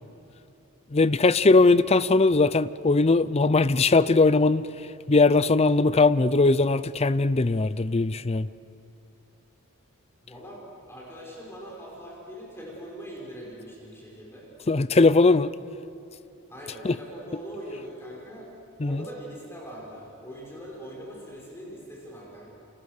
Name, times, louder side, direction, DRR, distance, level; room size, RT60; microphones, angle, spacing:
voice 1, 0.9-4.7 5.1-8.5 14.7-15.5 16.8-17.0 18.8-19.0, left 3 dB, 30° left, 0.5 m, -20 dB
voice 2, 10.2-14.5 16.5-18.5 18.8-22.5, equal, 10° left, 5.4 m, -41 dB
30.0 x 26.5 x 6.6 m
head